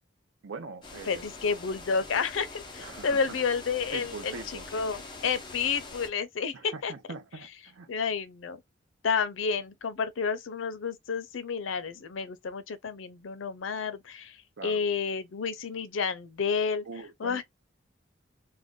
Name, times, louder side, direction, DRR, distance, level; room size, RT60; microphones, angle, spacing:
voice 1, 0.4-1.2 2.8-3.4 3.9-4.7 6.5-7.9 9.4-9.5 14.6-14.9 16.8-17.4, right 4 dB, 80° right, 0.6 m, -42 dB
sound 1, 0.8-6.1, left 3 dB, 25° left, 0.6 m, -44 dB
voice 2, 1.1-6.9 7.9-8.6 9.0-14.4 14.6-16.8 17.2-17.4, left 5 dB, 90° left, 0.5 m, -30 dB
2.5 x 2.2 x 3.5 m
head